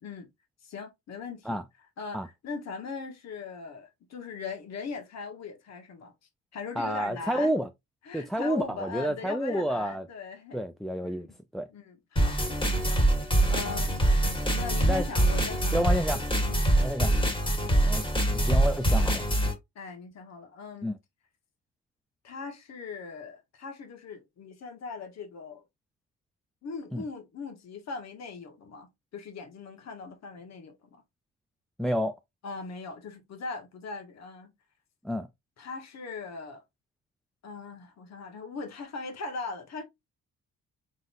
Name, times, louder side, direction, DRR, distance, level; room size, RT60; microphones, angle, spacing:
voice 1, 0.6-1.6 2.0-6.1 6.5-7.5 8.0-10.6 11.0-11.3 11.7-13.9 14.5-15.8 16.5-16.6 19.7-20.9 22.2-25.6 26.6-28.9 29.1-31.0 32.4-34.5 35.6-36.6 37.4-39.8, left 4 dB, 60° left, 1.4 m, -40 dB
voice 2, 6.8-7.7 8.1-10.1 10.5-11.3 11.5-11.7 14.9-15.1 15.7-16.2 16.8-17.1 17.8-18.0 18.3-19.3 20.8-21.0 26.9-27.0 31.8-32.2 35.0-35.3, equal, ahead, 0.3 m, -29 dB
sound 1, 12.2-19.5, right 1 dB, 15° left, 1.7 m, -24 dB
3.9 x 3.8 x 2.6 m
cardioid pair, 90°, 30 cm